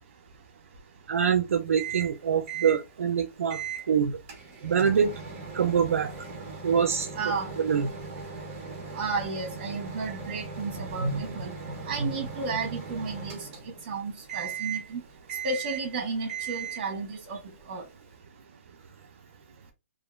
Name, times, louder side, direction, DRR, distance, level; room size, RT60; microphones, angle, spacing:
voice 1, 1.1-4.2 4.6-5.1 5.5-6.1 6.6-7.1 7.6-7.9, right 7 dB, 75° right, 0.4 m, -25 dB
Microwave oven, 1.8-2.2 2.5-2.8 3.5-3.9 4.3-13.9 14.3-14.9 15.3-15.9 16.3-16.9, right 6 dB, 25° right, 0.8 m, -38 dB
voice 2, 7.1-7.6 8.9-15.0 15.4-17.8, right 4 dB, 40° right, 1.1 m, -32 dB
2.9 x 2.4 x 2.3 m
hypercardioid pair, 160°, 7 cm